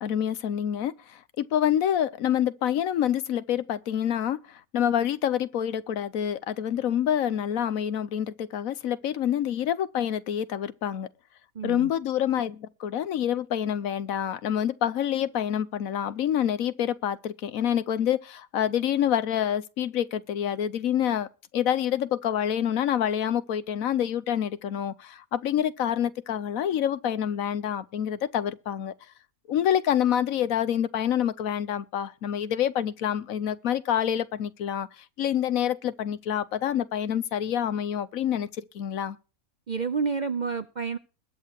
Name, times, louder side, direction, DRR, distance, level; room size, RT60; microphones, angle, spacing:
voice 1, 0.0-11.1 11.6-21.3 21.5-28.9 29.5-34.9 35.2-39.2, left 10 dB, 75° left, 1.2 m, -27 dB
voice 2, 11.5-11.9 39.7-41.0, right 5 dB, 45° right, 0.6 m, -29 dB
21.5 x 8.4 x 3.0 m
omnidirectional pair, 1.5 m